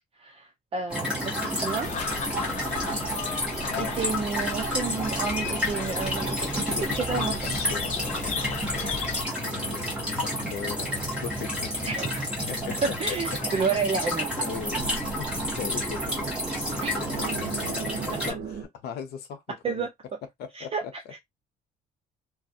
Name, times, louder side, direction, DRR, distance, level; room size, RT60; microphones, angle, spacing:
voice 1, 0.2-1.9 3.4-7.5 11.8-12.3 13.0-14.3 16.8-16.9 19.6-19.9 20.5-21.2, right 5 dB, 35° right, 0.5 m, -31 dB
sound 1, 0.9-18.3, equal, 5° right, 1.1 m, -30 dB
sound 2, 1.8-9.2, left 6 dB, 45° left, 0.4 m, -35 dB
voice 2, 6.7-9.0 9.4-11.9 12.5-13.2 14.4-19.9 20.4-21.1, left 8 dB, 70° left, 0.7 m, -39 dB
sound 3, 12.5-18.6, right 5 dB, 55° right, 0.9 m, -40 dB
2.4 x 2.0 x 2.6 m
cardioid pair, 110°, 17 cm